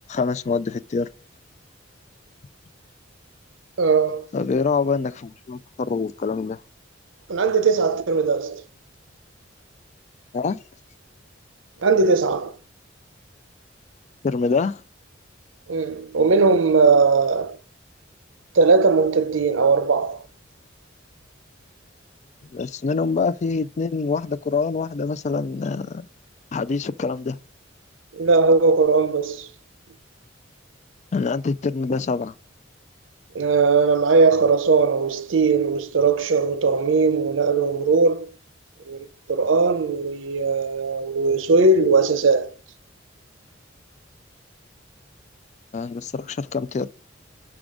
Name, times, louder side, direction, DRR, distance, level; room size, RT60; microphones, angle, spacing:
voice 1, 0.1-1.1 4.3-6.6 10.3-10.6 14.2-14.8 22.5-26.1 26.5-27.4 31.1-32.3 45.7-46.9, left 4 dB, 40° left, 0.4 m, -25 dB
voice 2, 3.8-4.3 7.3-8.6 11.8-12.6 15.7-17.6 18.5-20.2 28.1-29.5 33.3-38.3 38.9-42.5, right 4 dB, 85° right, 0.7 m, -19 dB
6.0 x 3.7 x 4.9 m
head